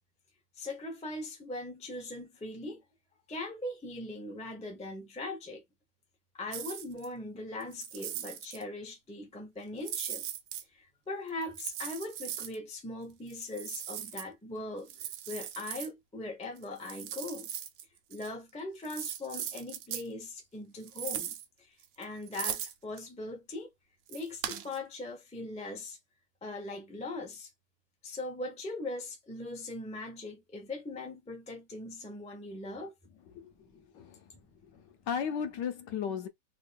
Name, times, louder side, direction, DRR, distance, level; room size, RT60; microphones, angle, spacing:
voice 1, 0.6-2.8 3.3-5.6 6.3-10.2 10.7-17.5 18.1-23.7 24.1-26.0 26.4-27.5 28.0-32.9 33.7-33.8 34.7-34.8, left 2 dB, 10° left, 0.3 m, -40 dB
sound 1, 6.5-7.1 7.6-8.6 9.8-10.6 11.4-12.6 13.3-14.2 14.9-15.9 16.6-17.8 18.1-18.3 18.8-20.1 20.8-21.5 21.8-23.0 24.1-24.8, right 10 dB, 75° right, 1.2 m, -39 dB
voice 2, 34.7-36.3, left 7 dB, 70° left, 1.2 m, -35 dB
3.5 x 2.2 x 3.3 m
omnidirectional pair, 2.1 m